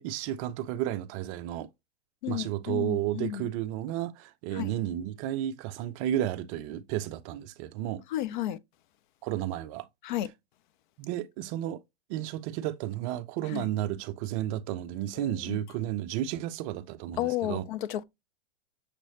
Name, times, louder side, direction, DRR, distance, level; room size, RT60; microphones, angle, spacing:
voice 1, 0.0-1.7 2.3-8.0 9.2-9.9 10.2-10.3 11.0-11.8 12.1-17.6, right 12 dB, 30° right, 0.5 m, -32 dB
voice 2, 2.2-3.4 4.6-4.7 8.1-8.6 10.1-10.3 13.5-13.7 15.2-15.6 17.2-18.0, left 13 dB, 50° left, 0.5 m, -32 dB
6.5 x 3.0 x 2.7 m
hypercardioid pair, 130°, 33 cm